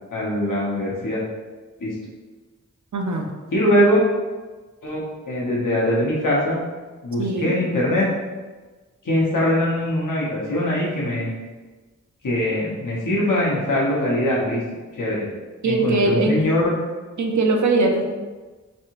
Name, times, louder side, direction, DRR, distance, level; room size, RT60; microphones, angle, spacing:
voice 1, 0.1-1.2 1.8-1.9 3.5-4.1 4.8-6.6 7.0-8.1 9.0-11.3 12.2-14.6 14.9-15.2 15.6-16.7, left 1 dB, 85° left, -5 dB, 0.9 m, -22 dB
voice 2, 2.9-3.3 7.2-7.5 15.6-16.4 17.2-18.1, right 2 dB, 65° right, 2 dB, 0.5 m, -20 dB
3.2 x 2.8 x 2.9 m, 1.3 s
wide cardioid pair, 50°, 31 cm